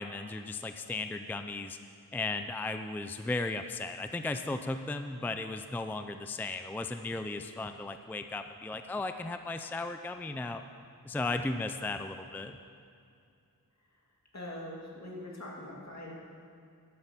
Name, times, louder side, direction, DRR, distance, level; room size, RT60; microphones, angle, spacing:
voice 1, 0.0-1.8 2.1-10.6 11.0-12.5, left 3 dB, 5° left, 8 dB, 0.4 m, -36 dB
voice 2, 14.3-16.2, left 1 dB, 50° left, -3 dB, 2.4 m, -42 dB
12.0 x 8.0 x 5.9 m, 2.5 s
wide cardioid pair, 70°, 36 cm